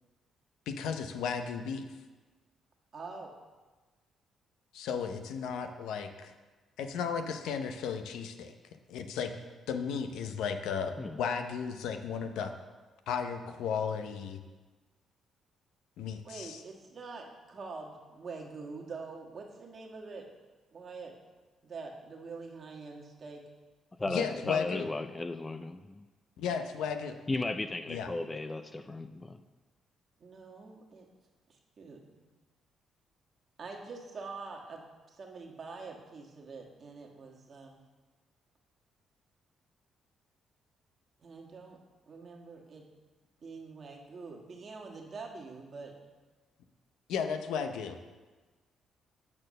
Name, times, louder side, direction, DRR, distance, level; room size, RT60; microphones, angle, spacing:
voice 1, 0.7-1.8 4.7-6.3 6.8-8.5 8.9-9.4 9.7-12.5 13.1-14.4 16.0-16.6 24.1-24.9 26.4-27.2 27.9-28.1 47.1-48.0, left 6 dB, 85° left, 7 dB, 0.6 m, -34 dB
voice 2, 2.9-3.3 16.2-20.3 20.7-21.1 21.6-23.4 30.2-31.1 31.5-32.0 33.6-34.8 35.1-37.8 41.2-41.8 42.1-42.8 43.4-45.9, right 4 dB, 45° right, 0 dB, 1.4 m, -45 dB
voice 3, 24.0-26.0 27.3-29.4, left 2 dB, 20° left, 10 dB, 0.3 m, -35 dB
8.5 x 4.4 x 6.4 m, 1.3 s
cardioid pair, 90°, 0 cm